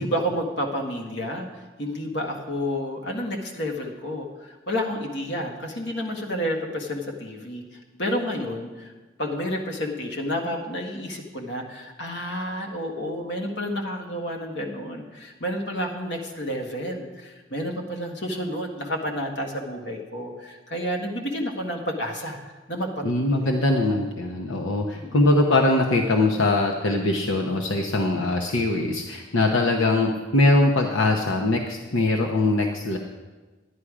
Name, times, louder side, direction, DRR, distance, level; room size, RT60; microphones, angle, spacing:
voice 1, 0.0-7.6 8.0-8.9 9.2-22.4 22.7-23.5 24.9-25.2, equal, 60° left, 2 dB, 1.5 m, -30 dB
voice 2, 23.0-33.0, left 2 dB, 80° left, 1 dB, 0.9 m, -22 dB
11.5 x 10.0 x 4.9 m, 1.2 s
head